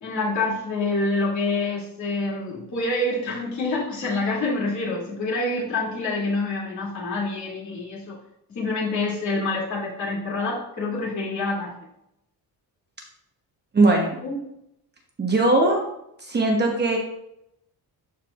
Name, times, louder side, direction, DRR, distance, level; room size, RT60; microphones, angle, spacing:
voice 1, 0.0-8.2 8.5-11.7 14.2-14.4, left 2 dB, 45° left, -6 dB, 2.7 m, -27 dB
voice 2, 13.7-14.2 15.2-15.8 16.2-17.0, right 2 dB, 25° right, 0 dB, 1.0 m, -19 dB
12.5 x 4.5 x 2.4 m, 0.79 s
cardioid pair, 175°, 39 cm